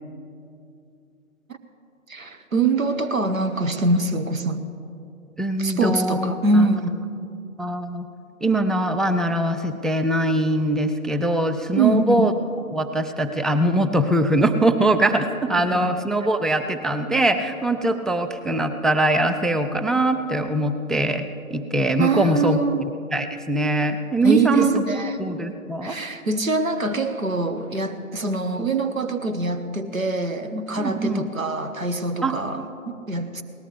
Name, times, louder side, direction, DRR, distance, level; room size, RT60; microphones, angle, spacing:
voice 1, 2.1-4.6 5.6-7.0 11.7-12.3 15.6-15.9 22.0-22.8 24.2-25.2 25.8-33.4, right 3 dB, 70° right, 8 dB, 1.4 m, -24 dB
voice 2, 5.4-6.7 7.6-8.1 8.4-12.3 12.7-22.6 23.1-24.7 25.2-26.0 30.8-31.3 32.2-32.3, right 1 dB, ahead, 8 dB, 0.3 m, -22 dB
22.0 x 18.5 x 3.3 m, 2.6 s
figure-of-eight pair, 150°, 42 cm